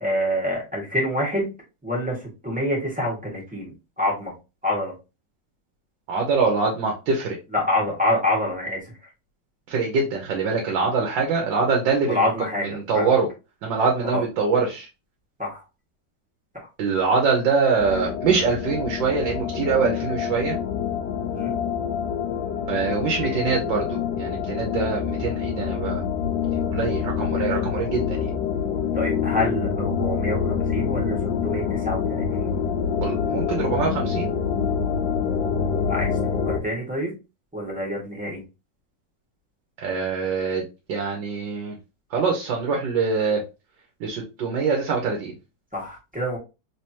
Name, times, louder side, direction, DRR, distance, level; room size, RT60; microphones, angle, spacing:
voice 1, 0.0-1.5 1.8-2.2 2.4-3.7 4.0-4.3 4.6-4.9 7.5-8.8 12.0-13.1 14.0-14.2 15.4-15.6 21.3-21.5 28.9-31.2 31.4-32.6 35.9-36.1 36.5-37.1 37.5-38.4 45.7-46.4, left 1 dB, 5° right, -3 dB, 1.5 m, -26 dB
voice 2, 6.1-7.4 9.7-13.3 13.6-14.9 16.8-20.6 22.7-26.0 26.7-28.3 33.0-34.3 39.8-41.8 42.1-43.4 44.0-45.3, right 4 dB, 90° right, 0 dB, 1.6 m, -24 dB
sound 1, 17.8-36.6, left 7 dB, 75° left, 1.2 m, -26 dB
3.5 x 3.4 x 2.8 m, 0.28 s
omnidirectional pair, 1.9 m